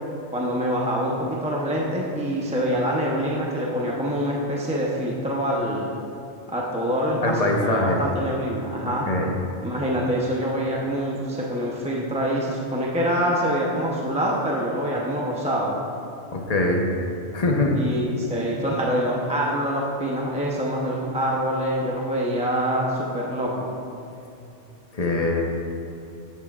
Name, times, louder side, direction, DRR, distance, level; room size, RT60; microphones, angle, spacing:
voice 1, 0.3-5.9 6.5-9.1 9.6-15.8 17.8-23.7, equal, 5° right, -4 dB, 0.6 m, -25 dB
voice 2, 7.2-8.0 9.1-9.3 16.3-16.8 17.3-17.8 24.9-25.4, left 2 dB, 35° left, 0 dB, 0.9 m, -22 dB
13.0 x 7.3 x 2.4 m, 2.6 s
omnidirectional pair, 1.3 m